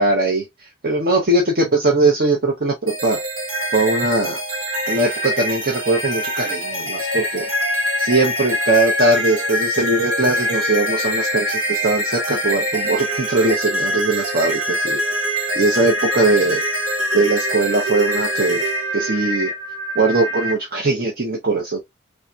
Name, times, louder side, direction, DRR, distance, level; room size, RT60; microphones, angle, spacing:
voice 1, 0.0-3.2 3.7-4.4 4.9-7.5 8.0-15.0 15.5-16.6 17.1-19.5 19.9-21.8, right 2 dB, 50° right, 0.9 m, -20 dB
sound 1, 2.9-20.5, equal, 85° right, 1.2 m, -24 dB
3.4 x 2.9 x 2.4 m
head